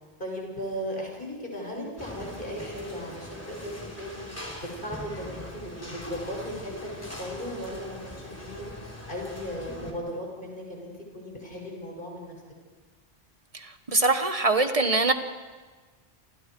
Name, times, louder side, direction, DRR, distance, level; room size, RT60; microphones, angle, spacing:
voice 1, 0.2-4.2 4.6-12.3, equal, 50° left, -1 dB, 6.5 m, -37 dB
sound 1, 2.0-9.9, left 1 dB, 15° left, 3.4 m, -41 dB
voice 2, 13.9-15.1, right 3 dB, 35° right, 8 dB, 1.4 m, -22 dB
28.5 x 27.5 x 4.7 m, 1.4 s
omnidirectional pair, 1.1 m